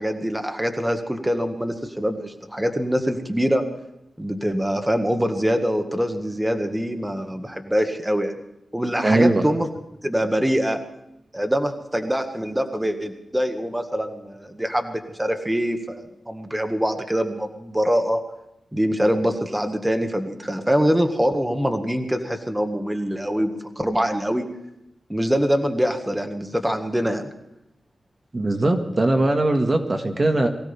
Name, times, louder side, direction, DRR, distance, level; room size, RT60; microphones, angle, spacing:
voice 1, 0.0-3.6 4.2-8.3 8.7-9.7 10.0-10.8 11.3-18.2 18.7-24.4 25.1-27.3, equal, 10° right, 6 dB, 1.8 m, -24 dB
voice 2, 9.0-9.5 28.3-30.5, right 2 dB, 35° right, 5 dB, 1.9 m, -20 dB
23.5 x 16.0 x 3.6 m, 0.88 s
cardioid pair, 60°, 0 cm